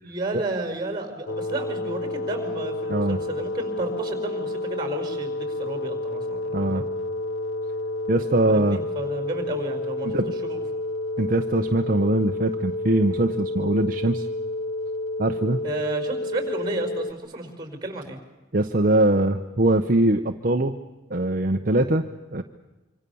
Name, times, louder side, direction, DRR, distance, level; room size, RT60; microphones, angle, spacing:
voice 1, 0.0-6.9 8.5-10.6 15.6-18.2, right 2 dB, 25° right, 7 dB, 4.9 m, -32 dB
sound 1, 1.3-17.1, left 2 dB, 85° left, 1.0 m, -30 dB
voice 2, 2.9-3.2 6.5-6.8 8.1-8.8 10.0-10.3 11.2-14.3 15.2-15.6 18.5-20.7 21.1-22.0 22.3-22.4, right 2 dB, 45° right, 5 dB, 0.9 m, -22 dB
26.0 x 25.5 x 7.1 m, 1.1 s
head